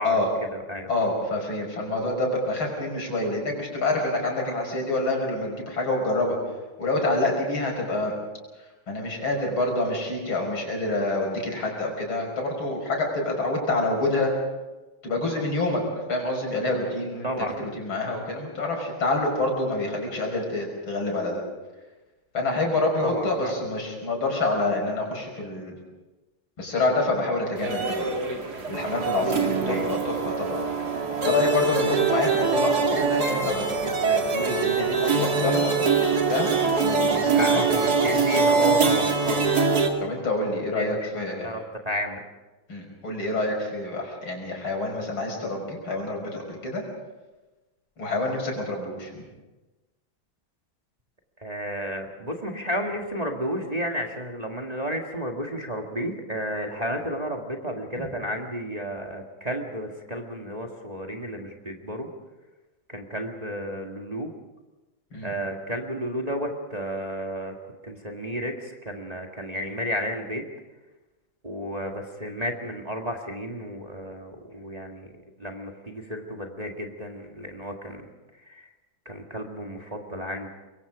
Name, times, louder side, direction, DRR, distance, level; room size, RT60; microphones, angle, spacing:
voice 1, 0.0-0.9 17.2-17.6 23.0-23.6 29.7-29.9 37.1-39.5 40.7-42.2 51.4-62.1 62.9-64.3 65.2-67.5 67.8-70.4 71.4-75.1 75.4-78.1 78.5-78.7 79.1-80.5, equal, 20° right, 1 dB, 1.8 m, -32 dB
voice 2, 0.9-6.4 6.8-8.1 8.9-14.3 15.0-15.8 16.1-17.3 17.7-21.4 22.3-25.7 26.6-28.1 28.7-30.6 31.2-36.5 36.8-37.6 40.0-41.5 42.7-46.8 48.0-49.2 65.1-65.3, left 2 dB, 85° left, 1 dB, 6.4 m, -27 dB
sound 1, 27.6-39.9, right 4 dB, 50° right, 2.8 m, -23 dB
25.0 x 23.0 x 5.0 m, 1.1 s
omnidirectional pair, 2.2 m